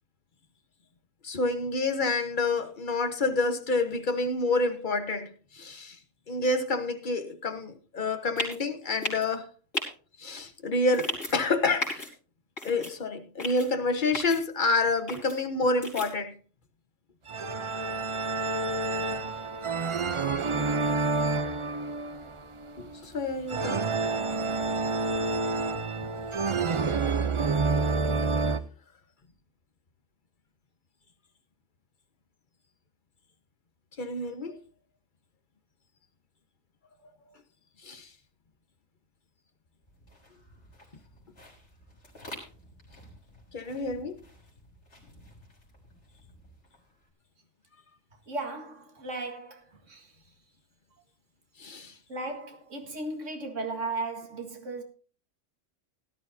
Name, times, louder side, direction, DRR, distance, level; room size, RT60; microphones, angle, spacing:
voice 1, 1.2-6.0 6.3-9.5 10.2-12.1 12.6-16.3 22.8-23.9 26.7-26.8 34.0-34.6 37.8-38.1 43.5-44.2 51.6-51.9, left 3 dB, 40° left, 1.3 m, -28 dB
sound 1, 8.4-8.6 9.0-9.3 9.7-9.9 10.9-11.3 11.8-12.1 12.6-12.9 13.4-13.7 14.1-14.4 15.1-15.4 15.8-16.1, left 2 dB, 85° left, 4.0 m, -33 dB
sound 2, 17.3-28.6, right 3 dB, 40° right, 0.5 m, -29 dB
sound 3, 39.8-47.1, left 1 dB, 65° left, 4.0 m, -51 dB
voice 2, 48.3-50.1 52.1-54.8, right 2 dB, 75° right, 2.2 m, -36 dB
17.5 x 11.5 x 2.7 m
omnidirectional pair, 1.3 m